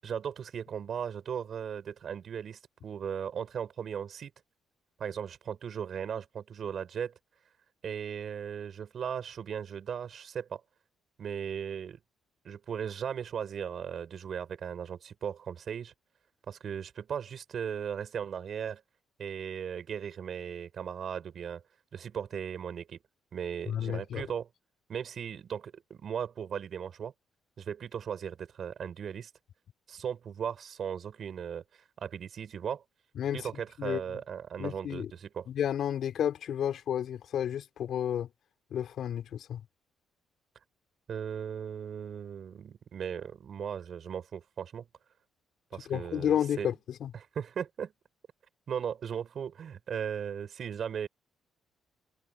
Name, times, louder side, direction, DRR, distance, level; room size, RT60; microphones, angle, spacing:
voice 1, 0.0-4.3 5.0-7.1 7.8-10.6 11.2-12.0 12.4-15.9 16.5-18.8 19.2-21.6 21.9-23.0 23.3-24.5 24.9-27.1 27.6-29.3 29.9-31.6 32.0-32.8 33.3-35.5 41.1-44.9 45.7-46.7 47.1-47.9 48.7-51.1, right 8 dB, 55° right, 6.4 m, -37 dB
voice 2, 23.7-24.2 33.2-33.4 33.8-34.0 34.6-35.1 35.5-38.3 38.7-39.6 45.9-46.7 47.0-47.1, left 9 dB, 70° left, 3.7 m, -31 dB
cardioid pair, 90°, 0 cm